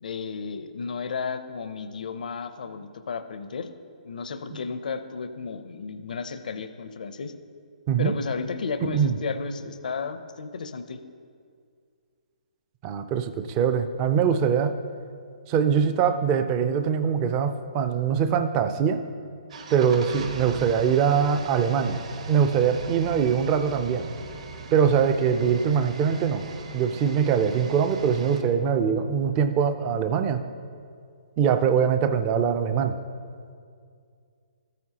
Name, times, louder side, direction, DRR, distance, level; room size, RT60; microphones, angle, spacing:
voice 1, 0.0-3.7 4.0-7.3 8.0-11.0, left 5 dB, 70° left, 9 dB, 0.5 m, -33 dB
voice 2, 8.8-9.2 12.8-14.7 15.5-19.0 19.7-22.0 22.3-24.1 24.7-26.4 26.7-30.4 31.4-33.0, right 7 dB, 20° right, 10 dB, 0.4 m, -23 dB
sound 1, 19.5-28.4, right 4 dB, 50° right, 0.9 m, -39 dB
13.5 x 9.2 x 2.8 m, 2.3 s
hypercardioid pair, 165°, 5 cm